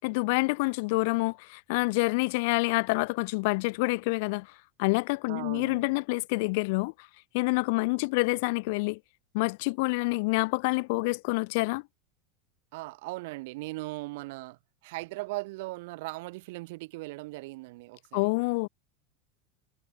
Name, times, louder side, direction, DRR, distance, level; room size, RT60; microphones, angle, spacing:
voice 1, 0.0-4.5 4.8-6.9 7.3-9.0 9.3-11.8 18.1-18.7, left 27 dB, 65° left, 0.7 m, -27 dB
voice 2, 5.3-5.9 12.7-18.3, right 22 dB, 70° right, 2.5 m, -39 dB
supercardioid pair, 140°, 0 cm